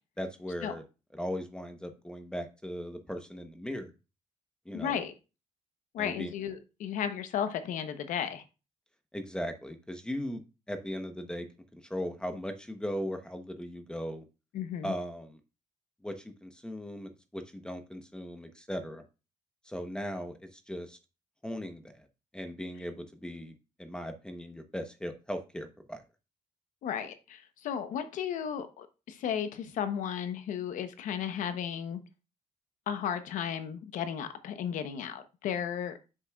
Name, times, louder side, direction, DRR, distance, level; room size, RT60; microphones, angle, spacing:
voice 1, 0.2-0.8 1.1-3.9 4.7-5.0 6.0-6.3 9.1-10.4 10.7-11.5 11.7-14.2 14.8-15.4 16.0-19.0 19.6-21.0 21.4-22.1 22.3-23.5 23.8-26.0, equal, 5° left, 0.9 m, -38 dB
voice 2, 4.7-5.1 5.9-8.4 14.5-14.9 26.8-32.0 32.9-36.0, left 8 dB, 85° left, 0.9 m, -34 dB
7.4 x 6.8 x 2.3 m
cardioid pair, 115°, 13 cm